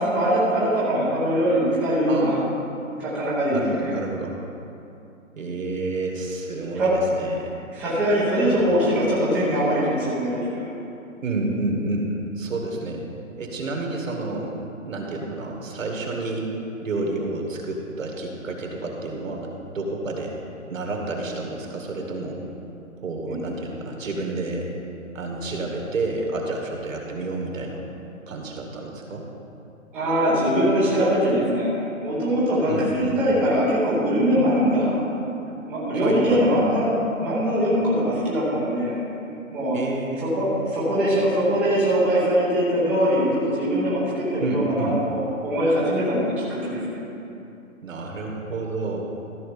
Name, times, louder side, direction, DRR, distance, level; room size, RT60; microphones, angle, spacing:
voice 1, 0.0-2.4 3.0-3.8 6.7-6.9 7.7-10.7 23.3-23.4 29.9-31.7 32.0-35.0 35.7-38.9 39.5-39.8 40.2-47.0, equal, 5° right, -10 dB, 0.7 m, -22 dB
voice 2, 2.1-2.8 3.5-4.4 5.4-7.5 8.3-8.9 11.2-13.1 13.4-14.5 14.9-16.6 16.8-20.4 20.7-22.4 23.0-24.7 25.1-27.8 28.3-29.2 32.7-33.2 35.9-36.5 39.7-40.8 44.4-45.0 47.8-49.0, right 2 dB, 65° right, 0 dB, 2.2 m, -30 dB
13.5 x 4.7 x 6.7 m, 2.8 s
hypercardioid pair, 155°, 42 cm